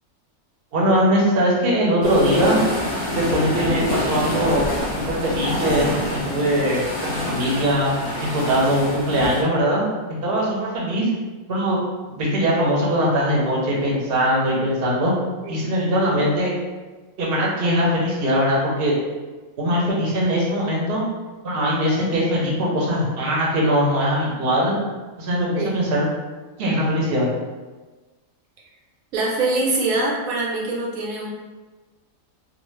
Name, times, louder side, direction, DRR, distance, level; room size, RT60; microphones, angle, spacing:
voice 1, 0.7-2.6 3.2-4.6 5.0-5.9 6.3-7.9 8.2-9.8 10.2-11.1 11.5-11.8 12.1-15.1 15.5-16.5 17.2-19.0 19.6-21.0 21.4-24.8 25.2-26.1 26.6-27.3, equal, 50° right, -4 dB, 0.8 m, -21 dB
sound 1, 2.0-9.4, left 1 dB, 25° left, 0.9 m, -26 dB
voice 2, 29.1-31.3, right 2 dB, 85° right, -3 dB, 1.2 m, -24 dB
2.5 x 2.3 x 3.1 m, 1.3 s
omnidirectional pair, 1.4 m